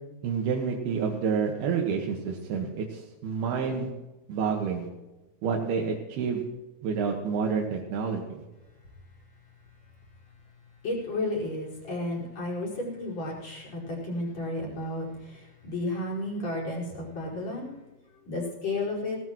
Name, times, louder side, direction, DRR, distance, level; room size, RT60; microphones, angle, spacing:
voice 1, 0.2-3.9 4.3-4.9 5.4-6.4 6.8-8.2, right 6 dB, 75° right, 0 dB, 3.3 m, -28 dB
voice 2, 10.8-17.7 18.3-19.2, left 2 dB, 45° left, -5 dB, 6.0 m, -32 dB
18.5 x 18.0 x 3.0 m, 1.1 s
omnidirectional pair, 4.6 m